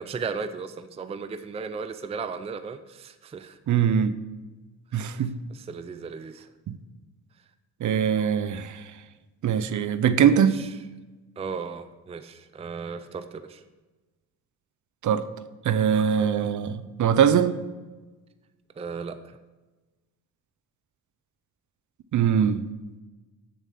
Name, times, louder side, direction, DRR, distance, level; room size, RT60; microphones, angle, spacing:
voice 1, 0.0-3.6 5.5-6.5 10.3-10.7 11.4-13.6 18.8-19.4, right 5 dB, 15° right, 10 dB, 0.5 m, -36 dB
voice 2, 3.7-4.1 4.9-5.3 7.8-8.8 9.4-10.6 15.0-15.2 15.6-17.6 22.1-22.6, right 8 dB, 50° right, 13 dB, 0.8 m, -22 dB
10.5 x 7.3 x 5.8 m, 1.2 s
cardioid pair, 105°, 38 cm